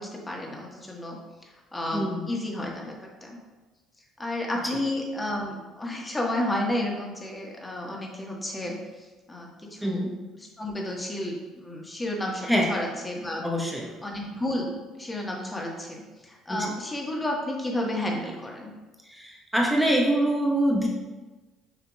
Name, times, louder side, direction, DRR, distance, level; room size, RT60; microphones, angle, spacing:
voice 1, 0.0-2.9 3.2-3.4 4.2-10.0 10.3-13.4 14.0-18.7, left 1 dB, 15° left, -1 dB, 1.5 m, -32 dB
voice 2, 13.4-13.9 16.5-16.7 19.1-20.9, equal, ahead, -1 dB, 1.2 m, -24 dB
7.0 x 5.6 x 2.4 m, 1.2 s
figure-of-eight pair, 55°, 0 cm